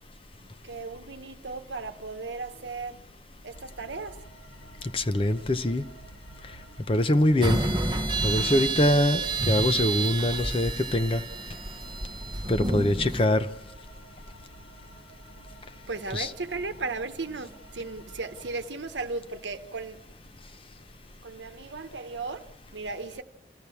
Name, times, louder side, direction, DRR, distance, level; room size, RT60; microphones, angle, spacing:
voice 1, 0.4-3.0 3.4-4.2 15.9-20.0 21.2-23.2, right 3 dB, 85° right, 1.1 m, -36 dB
sound 1, 3.5-18.7, right 1 dB, 65° left, 1.8 m, -50 dB
voice 2, 4.9-5.8 6.9-7.6 8.2-11.2 12.5-13.5 16.1-16.3, left 1 dB, 30° left, 0.7 m, -23 dB
sound 2, 7.4-13.3, right 3 dB, 25° right, 1.0 m, -29 dB
28.0 x 15.0 x 7.1 m
head